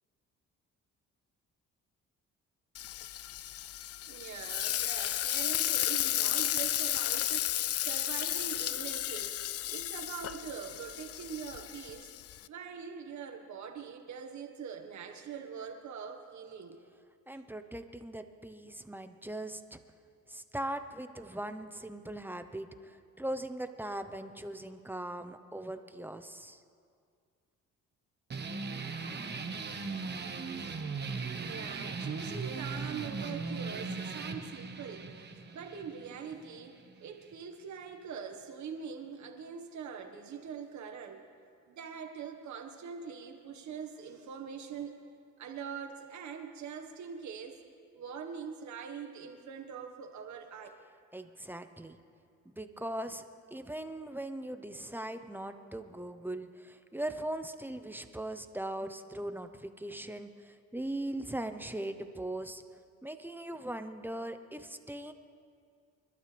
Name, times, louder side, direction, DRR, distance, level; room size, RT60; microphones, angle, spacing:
Frying (food), 2.7-12.5, left 12 dB, 50° left, 0.5 m, -33 dB
voice 1, 4.1-9.4 9.7-12.1 12.5-16.8 31.4-41.2 41.7-45.0 45.4-47.6 47.9-50.7, right 6 dB, 70° right, 5 dB, 1.6 m, -43 dB
voice 2, 17.3-19.8 20.3-26.6 51.1-52.0 52.5-53.2 53.5-62.6 63.0-65.1, right 1 dB, 5° right, 8 dB, 0.8 m, -40 dB
sound 1, 28.3-37.3, right 4 dB, 35° right, 1.3 m, -39 dB
28.5 x 12.5 x 3.4 m, 2.2 s
cardioid pair, 90°, 30 cm